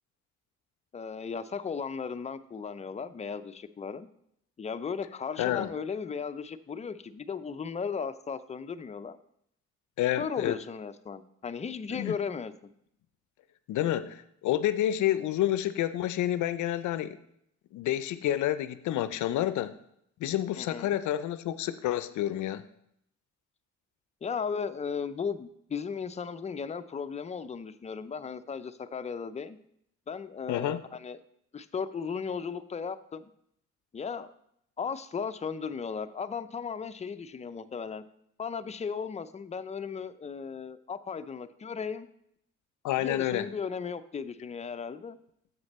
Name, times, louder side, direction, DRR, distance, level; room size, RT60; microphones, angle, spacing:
voice 1, 0.9-4.1 4.6-9.2 10.2-12.5 20.6-20.9 24.2-29.6 30.1-31.2 31.5-33.3 33.9-34.3 34.8-38.0 38.4-42.1 43.0-45.2, left 6 dB, 25° left, 11 dB, 0.4 m, -36 dB
voice 2, 5.4-5.7 10.0-10.6 11.9-12.1 13.7-17.2 17.7-19.8 20.2-22.6 30.5-30.8 42.8-43.5, left 12 dB, 75° left, 13 dB, 0.5 m, -29 dB
7.3 x 6.5 x 4.1 m, 0.74 s
cardioid pair, 90°, 30 cm